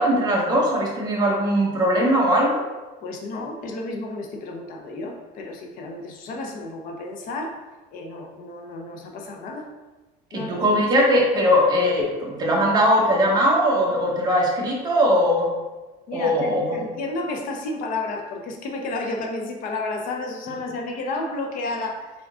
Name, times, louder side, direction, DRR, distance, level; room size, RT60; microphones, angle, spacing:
voice 1, 0.0-2.6 10.3-15.5 16.1-16.8, equal, 25° right, -2 dB, 0.9 m, -20 dB
voice 2, 3.0-7.6 7.9-9.7 10.3-11.1 16.1-22.1, left 2 dB, 55° left, 2 dB, 0.6 m, -32 dB
3.7 x 3.6 x 3.5 m, 1.2 s
cardioid pair, 160°, 17 cm